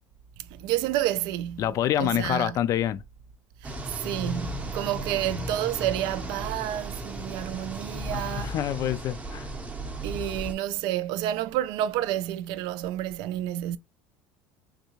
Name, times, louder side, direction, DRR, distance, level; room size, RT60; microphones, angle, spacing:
voice 1, 0.5-1.7 2.0-2.6 3.6-8.5 10.0-13.8, right 13 dB, 65° right, 0.3 m, -30 dB
voice 2, 1.6-3.0 8.1-9.5, left 11 dB, 45° left, 0.3 m, -27 dB
sound 1, 3.6-10.5, right 1 dB, 15° right, 0.6 m, -35 dB
3.5 x 2.7 x 2.9 m
supercardioid pair, 115°, 8 cm